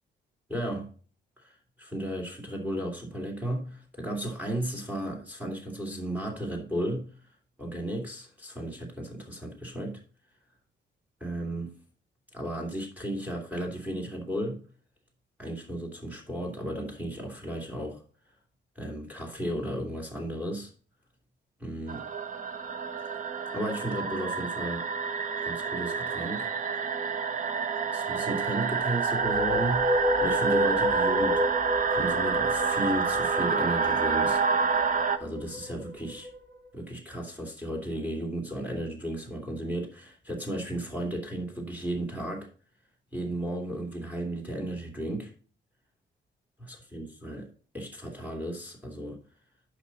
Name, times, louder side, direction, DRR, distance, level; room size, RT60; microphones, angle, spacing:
voice 1, 0.5-0.9 1.4-7.1 7.6-10.0 11.2-11.7 12.3-14.6 15.4-18.0 18.7-20.7 21.6-22.1 23.5-24.8 25.4-26.5 27.9-31.4 31.9-34.4 35.2-36.3 36.7-42.5 43.1-45.3 46.9-47.5 47.7-49.2, right 1 dB, 10° right, 2 dB, 2.8 m, -34 dB
sound 1, 21.9-35.2, right 5 dB, 45° right, 0.8 m, -28 dB
sound 2, 29.1-36.4, left 1 dB, 85° right, 3.8 m, -31 dB
11.5 x 5.3 x 4.1 m, 0.40 s
cardioid pair, 120°, 19 cm